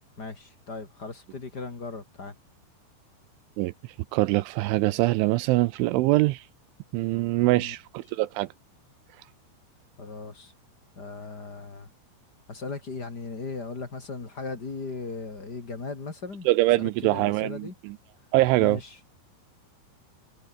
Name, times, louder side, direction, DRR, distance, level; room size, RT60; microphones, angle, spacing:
voice 1, 0.2-2.3 7.4-7.8 8.1-8.2 10.0-10.5 11.0-11.9 12.5-16.5 16.8-17.7 18.6-19.0, left 3 dB, 25° left, 2.5 m, -37 dB
voice 2, 4.1-6.4 6.9-8.5 16.5-17.6 18.3-18.8, right 19 dB, 80° right, 3.1 m, -23 dB
omnidirectional pair, 5.7 m